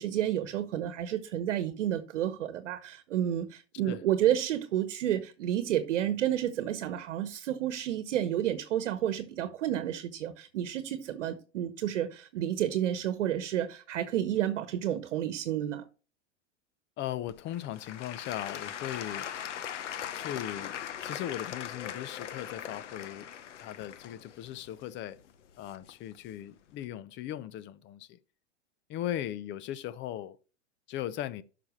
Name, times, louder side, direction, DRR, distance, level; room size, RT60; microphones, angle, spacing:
voice 1, 0.0-15.9, right 11 dB, 75° right, 1.1 m, -30 dB
voice 2, 17.0-19.3 20.1-20.7 21.0-23.3 23.6-25.2 25.6-28.2 28.9-30.4 30.9-31.4, left 12 dB, 30° left, 0.6 m, -38 dB
Applause / Crowd, 17.3-26.2 26.8-26.9, left 9 dB, 85° left, 1.0 m, -40 dB
13.0 x 5.9 x 3.2 m
hypercardioid pair, 120°, 36 cm